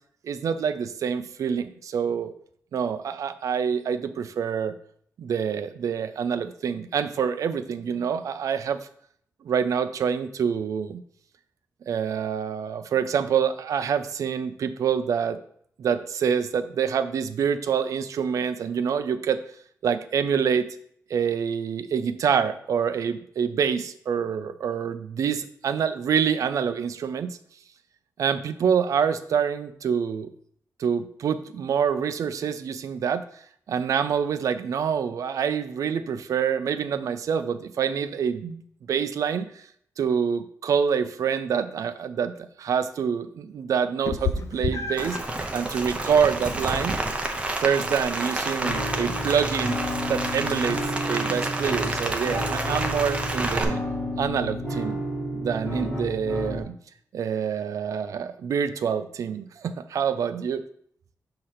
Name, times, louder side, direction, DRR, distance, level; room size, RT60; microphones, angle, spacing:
voice 1, 0.2-2.3 2.7-4.7 5.2-8.8 9.4-11.0 11.9-15.4 15.8-19.4 19.8-20.7 21.1-27.4 28.2-30.3 30.8-33.2 33.7-38.6 38.9-39.5 40.0-45.2 45.5-46.9 47.5-49.8 50.1-50.8 51.1-53.8 54.2-55.0 55.3-56.8 57.1-60.6, right 7 dB, 70° right, 10 dB, 0.5 m, -26 dB
Meow, 44.1-53.7, left 5 dB, 60° left, 0.5 m, -38 dB
Rain, 45.0-53.6, right 2 dB, 20° right, 0.7 m, -29 dB
sound 1, 48.6-56.6, equal, 25° left, 2.5 m, -31 dB
6.5 x 2.9 x 5.7 m, 0.64 s
wide cardioid pair, 165°, 6 cm